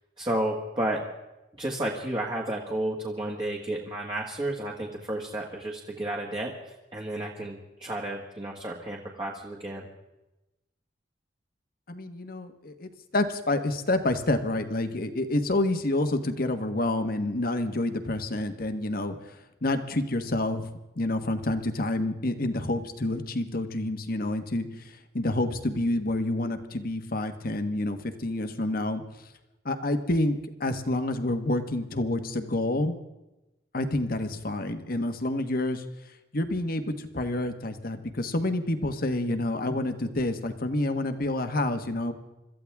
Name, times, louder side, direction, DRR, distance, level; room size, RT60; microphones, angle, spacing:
voice 1, 0.2-1.0 1.6-6.5 6.9-9.9, right 1 dB, 25° right, -2 dB, 1.8 m, -32 dB
voice 2, 11.9-20.7 21.0-29.0 29.6-33.0 33.7-35.8 36.3-42.1, left 1 dB, 55° left, 8 dB, 1.4 m, -28 dB
26.0 x 14.0 x 3.6 m, 0.99 s
head